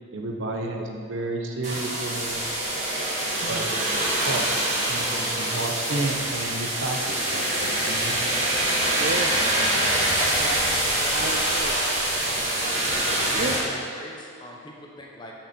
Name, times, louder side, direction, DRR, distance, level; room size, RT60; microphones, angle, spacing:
voice 1, 0.1-2.4 3.5-3.8 4.2-4.4 4.9-8.2, right 2 dB, 70° right, 2 dB, 1.1 m, -31 dB
sound 1, 1.6-13.6, right 1 dB, 35° right, 2.4 m, -25 dB
voice 2, 8.8-9.3 11.1-11.8 13.2-13.6, right 2 dB, 50° right, 4 dB, 0.5 m, -33 dB
voice 3, 9.8-11.2 13.2-15.3, left 1 dB, 20° left, -1 dB, 1.1 m, -39 dB
13.5 x 5.7 x 4.5 m, 2.2 s
head